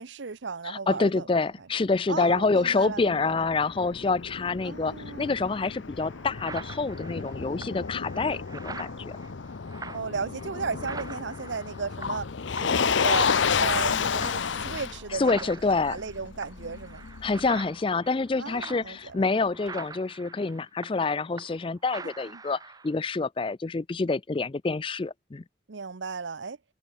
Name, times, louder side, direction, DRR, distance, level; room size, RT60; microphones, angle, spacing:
voice 1, 0.0-1.3 1.6-1.7 2.1-3.4 4.6-5.5 9.9-12.3 12.6-17.1 18.4-19.2 22.0-22.1 25.7-26.6, right 4 dB, 75° right, 0.8 m, -35 dB
voice 2, 0.7-9.2 15.2-16.0 17.2-25.4, left 3 dB, 25° left, 0.4 m, -27 dB
Motor vehicle (road), 2.4-17.5, left 6 dB, 80° left, 0.7 m, -31 dB
sound 1, 5.5-5.6 6.0-12.3 12.6-12.9 13.1-21.7 21.9-22.9, right 4 dB, 20° right, 1.1 m, -44 dB
head